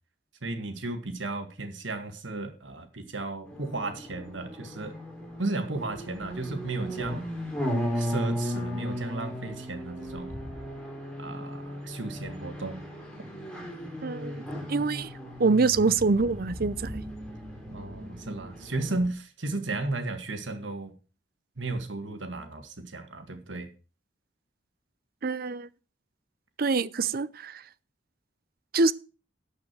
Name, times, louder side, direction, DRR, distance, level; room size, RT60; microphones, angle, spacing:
voice 1, 0.4-5.0 5.4-7.3 7.9-10.3 11.2-12.8 17.7-20.9 21.6-23.7, right 2 dB, 85° right, 1.9 m, -34 dB
sound 1, 3.5-19.1, equal, 5° left, 3.4 m, -36 dB
voice 2, 14.0-14.4 14.7-15.1 15.4-17.0 25.2-25.7 26.6-27.6 28.7-28.9, right 4 dB, 50° right, 0.6 m, -25 dB
12.0 x 6.5 x 6.2 m
head